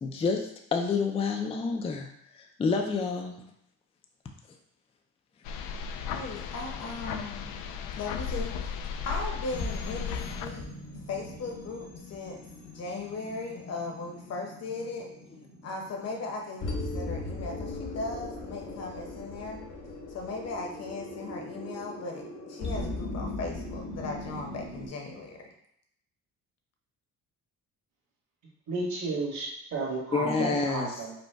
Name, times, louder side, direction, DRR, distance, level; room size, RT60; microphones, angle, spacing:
voice 1, 0.0-3.4 30.1-30.9, left 4 dB, 20° left, 4 dB, 0.4 m, -29 dB
sound 1, 5.4-10.5, left 6 dB, 90° left, 0.5 m, -35 dB
voice 2, 6.1-7.5 8.0-10.6 11.1-12.4 12.7-15.1 15.6-19.6 20.1-25.4, left 3 dB, 50° left, 2 dB, 1.0 m, -37 dB
sound 2, 9.5-24.9, left 2 dB, 65° left, 1.3 m, -39 dB
voice 3, 28.7-31.1, right 3 dB, 60° right, -8 dB, 1.7 m, -32 dB
5.1 x 2.2 x 4.5 m, 0.74 s
cardioid pair, 150°, 33 cm